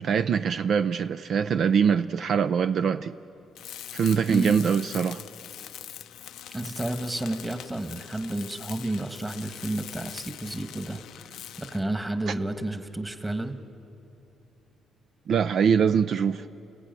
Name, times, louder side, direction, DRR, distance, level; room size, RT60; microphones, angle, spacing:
voice 1, 0.0-3.1 3.9-5.2 12.3-12.4 15.3-16.5, right 7 dB, 60° right, 0.5 m, -23 dB
Tools, 3.5-11.9, left 11 dB, 80° left, 0.6 m, -42 dB
voice 2, 6.5-11.0 11.6-13.6, right 1 dB, 15° right, 1.5 m, -31 dB
29.5 x 16.5 x 9.2 m
cardioid pair, 90°, 0 cm